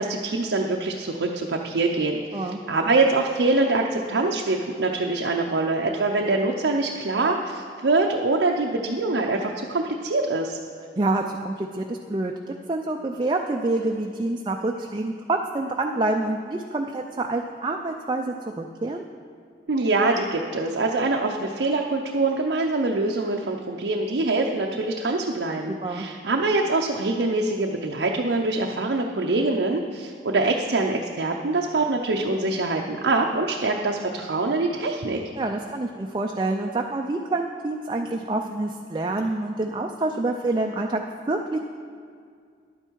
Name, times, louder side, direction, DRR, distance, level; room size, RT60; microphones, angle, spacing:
voice 1, 0.0-10.6 19.7-35.2, right 3 dB, 90° right, 1 dB, 0.6 m, -24 dB
voice 2, 11.0-19.0 25.7-26.1 35.4-41.0 41.3-41.6, right 2 dB, 25° right, 3 dB, 0.4 m, -27 dB
11.0 x 9.0 x 4.6 m, 2.2 s
head